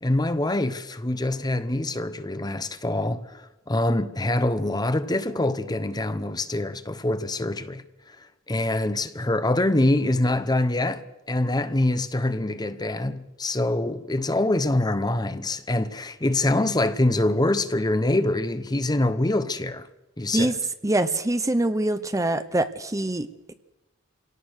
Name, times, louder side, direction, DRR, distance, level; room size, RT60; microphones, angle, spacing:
voice 1, 0.0-7.8 8.5-19.9 20.2-20.5, left 1 dB, 20° left, 0.9 m, -25 dB
voice 2, 20.8-23.5, right 1 dB, 15° right, 0.8 m, -24 dB
26.0 x 18.0 x 6.5 m
head